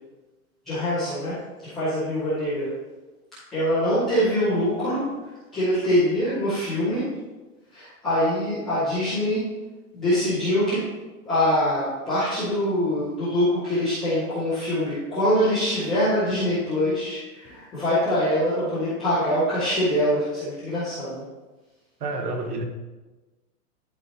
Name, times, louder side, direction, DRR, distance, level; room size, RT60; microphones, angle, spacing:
voice 1, 0.6-1.4 1.6-2.7 3.5-5.0 5.5-7.0 7.7-9.4 9.9-10.8 11.2-21.2, equal, ahead, -20 dB, 0.5 m, -24 dB
voice 2, 22.0-22.6, right 2 dB, 75° right, 4 dB, 1.5 m, -29 dB
11.5 x 4.2 x 2.8 m, 1.2 s
hypercardioid pair, 165°, 46 cm